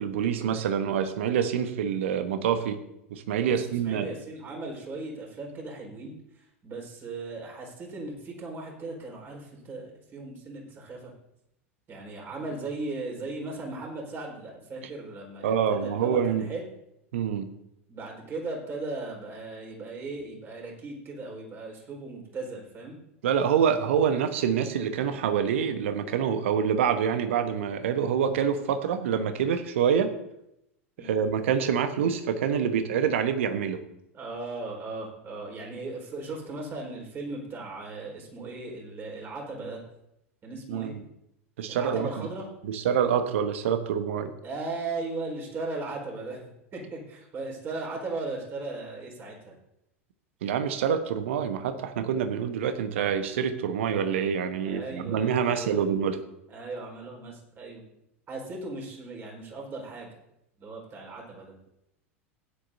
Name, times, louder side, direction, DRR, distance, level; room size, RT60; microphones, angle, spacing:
voice 1, 0.0-2.8 3.1-4.1 15.4-16.5 17.1-17.5 23.2-30.1 31.0-33.8 40.7-41.0 41.6-42.3 42.6-44.3 50.4-56.2, right 7 dB, 60° right, 10 dB, 1.1 m, -26 dB
voice 2, 3.4-11.1 11.9-16.7 17.9-23.0 31.0-31.2 34.1-39.8 40.4-41.0 41.7-42.5 44.4-49.5 54.6-55.8 56.5-57.8 58.3-60.2 60.6-61.5, right 3 dB, 30° right, -1 dB, 4.5 m, -37 dB
16.0 x 10.5 x 2.7 m, 0.83 s
figure-of-eight pair, 85°, 7 cm